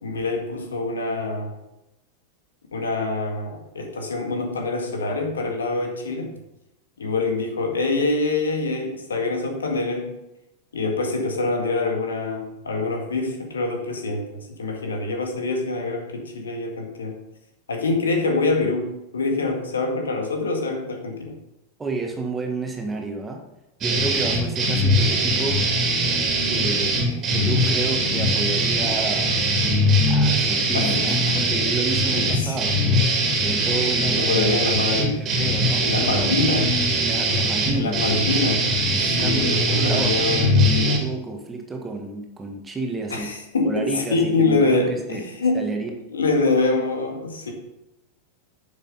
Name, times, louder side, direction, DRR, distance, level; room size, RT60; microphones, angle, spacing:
voice 1, 0.0-1.5 2.7-6.3 7.0-10.2 10.7-14.3 14.6-17.2 17.7-21.4 30.7-31.4 32.1-32.6 34.1-35.2 35.8-36.8 37.7-41.0 43.1-45.7 46.1-47.5, left 3 dB, 70° left, 3 dB, 1.9 m, -25 dB
voice 2, 21.8-23.4 23.8-25.6 26.4-33.0 33.4-34.6 34.9-36.4 37.0-38.1 39.0-40.1 40.7-43.3 43.6-45.2 45.5-45.9, right 3 dB, 15° right, 3 dB, 1.6 m, -31 dB
sound 1, 23.8-41.0, right 1 dB, 30° right, 2.6 m, -21 dB
10.5 x 7.5 x 4.1 m, 0.90 s
figure-of-eight pair, 90°, 0 cm